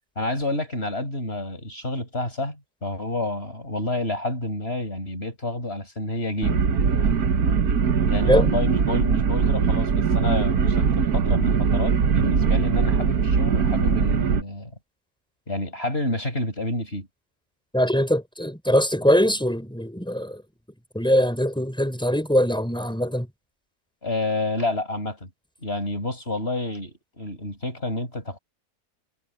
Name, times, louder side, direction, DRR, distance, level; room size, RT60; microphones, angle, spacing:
voice 1, 0.2-6.6 8.1-14.7 15.5-17.1 24.0-25.3 25.6-28.4, left 2 dB, 40° left, 8.1 m, -29 dB
sound 1, 6.4-14.4, right 6 dB, 70° right, 1.8 m, -21 dB
voice 2, 17.7-20.4 20.9-23.3, equal, 5° left, 6.5 m, -22 dB
omnidirectional pair, 1.7 m